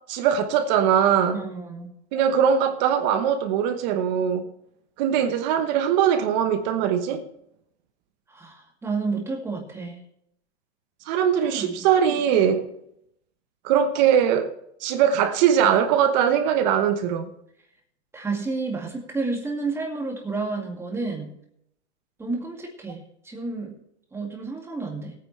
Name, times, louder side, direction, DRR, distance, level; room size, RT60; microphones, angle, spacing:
voice 1, 0.1-1.4 2.1-4.5 5.0-7.2 11.1-12.7 13.6-14.5 14.8-17.3, right 8 dB, 35° right, 1.1 m, -21 dB
voice 2, 1.3-1.9 8.3-10.0 11.5-11.9 18.1-21.3 22.2-23.7 24.1-25.1, right 3 dB, 5° right, 2.1 m, -30 dB
20.0 x 9.4 x 3.2 m
hypercardioid pair, 150°, 36 cm